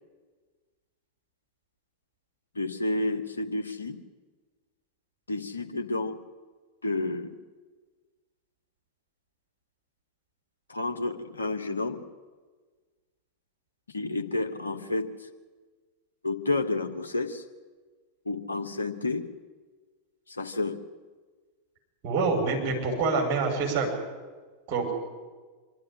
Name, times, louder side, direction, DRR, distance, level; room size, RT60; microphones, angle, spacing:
voice 1, 2.5-4.0 5.3-6.2 6.8-7.4 10.7-12.0 13.9-15.1 16.2-17.4 18.2-19.3 20.3-20.8, left 2 dB, 75° left, 4 dB, 1.6 m, -30 dB
voice 2, 22.0-23.9 24.7-24.9, right 4 dB, 40° right, 1 dB, 5.8 m, -26 dB
25.0 x 12.5 x 10.0 m, 1.4 s
figure-of-eight pair, 90°, 0 cm